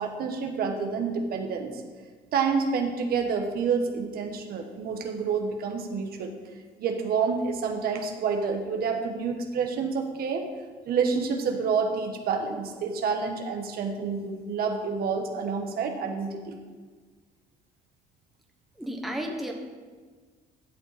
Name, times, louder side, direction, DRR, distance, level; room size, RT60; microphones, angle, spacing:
voice 1, 0.0-1.8 2.3-6.3 6.8-10.4 10.9-16.6, right 5 dB, 65° right, 4 dB, 1.2 m, -28 dB
voice 2, 18.8-19.5, equal, ahead, 1 dB, 1.2 m, -32 dB
11.5 x 7.0 x 4.1 m, 1.5 s
cardioid pair, 110°, 17 cm